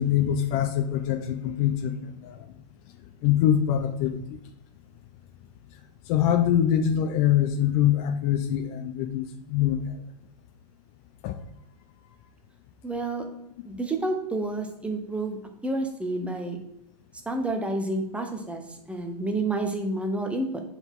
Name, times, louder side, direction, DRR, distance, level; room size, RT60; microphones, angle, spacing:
voice 1, 0.0-2.5 3.2-4.2 6.1-9.8 11.2-11.4, left 10 dB, 35° left, 8 dB, 0.5 m, -24 dB
voice 2, 12.8-13.2 13.7-15.4 15.6-16.6 17.3-18.6 18.9-20.6, right 2 dB, 5° right, 4 dB, 0.7 m, -29 dB
6.8 x 4.1 x 3.6 m, 0.80 s
hypercardioid pair, 125°, 20 cm